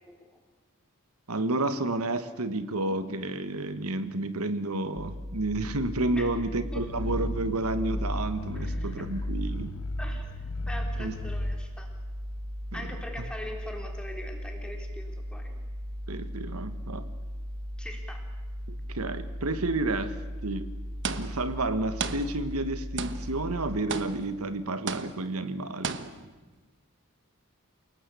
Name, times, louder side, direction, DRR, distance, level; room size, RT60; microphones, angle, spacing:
voice 1, 0.1-0.4 6.1-6.9 8.6-9.0 10.0-10.3 10.7-11.9 12.7-15.6 17.8-18.2, left 1 dB, 5° left, 2 dB, 3.5 m, -42 dB
voice 2, 1.3-9.7 11.0-11.1 12.7-12.8 16.1-17.0 18.7-20.2 20.4-20.7 21.2-26.0, right 2 dB, 90° right, 11 dB, 1.4 m, -31 dB
sound 1, 5.0-23.8, equal, 25° right, 1.7 m, -37 dB
Growling, 6.6-11.6, left 1 dB, 90° left, 1.4 m, -34 dB
sound 2, 21.0-21.6 22.0-22.7 23.0-23.5 23.9-24.5 24.9-25.4 25.8-26.4, right 5 dB, 55° right, 1.2 m, -35 dB
28.5 x 18.5 x 8.3 m, 1.3 s
head